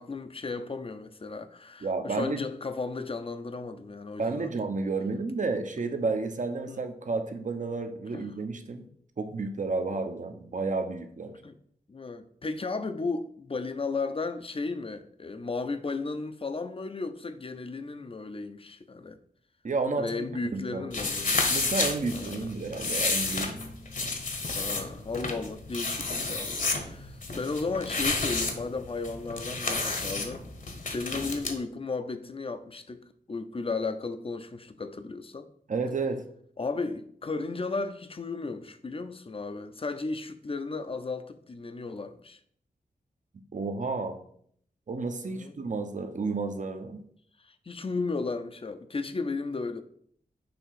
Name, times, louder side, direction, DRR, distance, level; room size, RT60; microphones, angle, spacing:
voice 1, 0.0-4.5 6.7-6.8 8.1-8.3 11.4-11.6 11.9-19.2 20.0-21.6 22.1-22.5 24.5-30.4 30.9-35.5 36.6-42.4 45.2-45.6 47.4-49.8, left 3 dB, 35° left, 0.7 m, -35 dB
voice 2, 1.8-2.4 4.2-8.9 9.2-11.3 19.6-20.3 20.5-20.9 21.5-23.6 35.7-36.2 43.5-44.2 44.9-47.0, right 3 dB, 50° right, 0.9 m, -31 dB
sound 1, 20.9-31.5, left 3 dB, 55° left, 1.3 m, -31 dB
6.8 x 3.0 x 5.8 m
cardioid pair, 65°, 16 cm